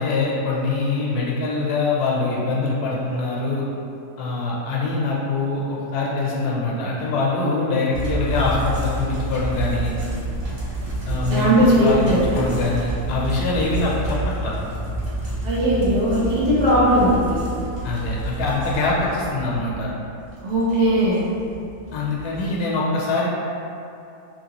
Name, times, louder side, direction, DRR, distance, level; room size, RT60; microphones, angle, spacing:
voice 1, 0.0-3.6 4.2-9.9 11.1-12.1 12.3-14.5 17.8-19.9 21.9-23.3, left 3 dB, 80° left, -4 dB, 1.1 m, -24 dB
sound 1, 7.9-22.5, right 1 dB, 40° right, 0.6 m, -29 dB
voice 2, 11.3-12.4 15.4-17.4 20.4-21.2, equal, 55° right, -9 dB, 1.0 m, -18 dB
2.9 x 2.7 x 2.8 m, 2.6 s
omnidirectional pair, 1.6 m